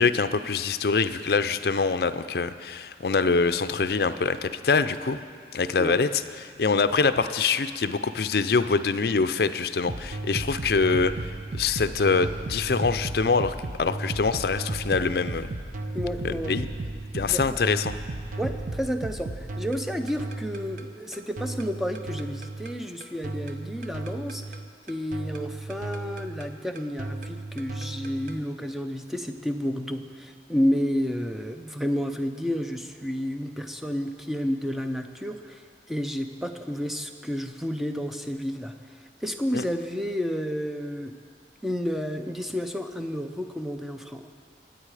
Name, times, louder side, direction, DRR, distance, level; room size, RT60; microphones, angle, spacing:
voice 1, 0.0-5.2 5.5-15.5 16.2-16.7 17.1-17.9 39.5-39.6, left 4 dB, 60° left, 11 dB, 0.5 m, -24 dB
sound 1, 9.9-28.4, right 2 dB, 45° right, 0.7 m, -35 dB
voice 2, 15.9-16.6 17.3-17.6 18.4-24.6 24.9-35.6 35.9-38.7 39.2-41.1 41.6-44.3, equal, ahead, 6 dB, 0.6 m, -31 dB
23.0 x 9.2 x 4.9 m, 2.1 s
head